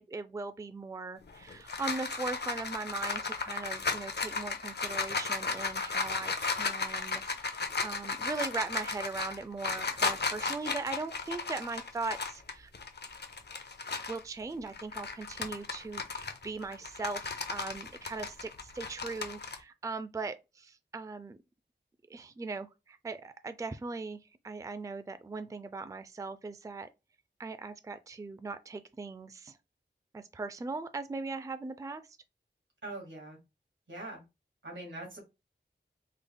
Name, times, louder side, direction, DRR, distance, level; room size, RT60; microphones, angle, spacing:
voice 1, 0.0-12.7 13.9-21.4 22.1-26.9 27.4-29.6 30.1-32.1, right 3 dB, 15° right, 0.3 m, -39 dB
sound 1, 1.3-14.2 14.7-19.6, left 4 dB, 65° left, 0.6 m, -35 dB
voice 2, 32.8-33.4 33.9-34.2 34.6-35.2, right 2 dB, 90° right, 1.6 m, -42 dB
3.7 x 2.0 x 3.4 m
wide cardioid pair, 55°, 19 cm